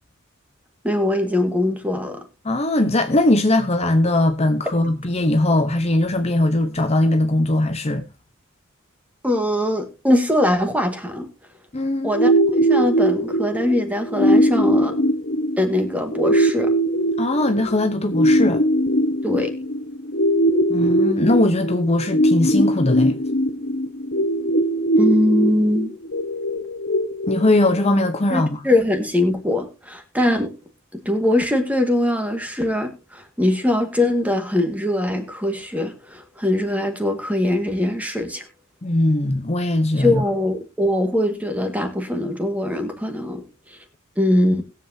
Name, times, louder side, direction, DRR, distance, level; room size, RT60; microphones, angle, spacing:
voice 1, 0.8-2.2 9.2-11.3 12.0-12.3 12.6-15.0 15.6-16.7 19.2-19.5 25.0-25.9 28.3-30.5 30.9-38.4 40.0-43.4 44.2-44.6, left 1 dB, 5° right, 1.8 m, -21 dB
voice 2, 2.4-8.0 11.7-12.1 17.2-18.6 20.7-23.1 27.3-28.6 38.8-40.2, left 1 dB, 30° left, 0.9 m, -20 dB
sound 1, 12.1-28.1, equal, 60° left, 1.3 m, -21 dB
20.0 x 7.7 x 2.8 m
head